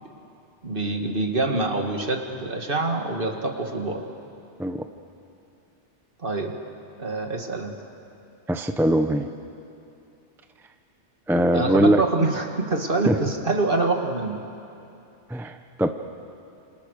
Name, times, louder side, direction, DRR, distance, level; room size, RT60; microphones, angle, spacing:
voice 1, 0.6-4.1 6.2-6.5 7.0-7.7 11.5-14.4, right 3 dB, 50° right, 3 dB, 2.3 m, -25 dB
voice 2, 8.5-9.3 11.3-12.0 13.1-13.2 15.3-15.9, right 1 dB, ahead, 7 dB, 0.8 m, -21 dB
29.5 x 28.0 x 6.6 m, 2.7 s
omnidirectional pair, 1.2 m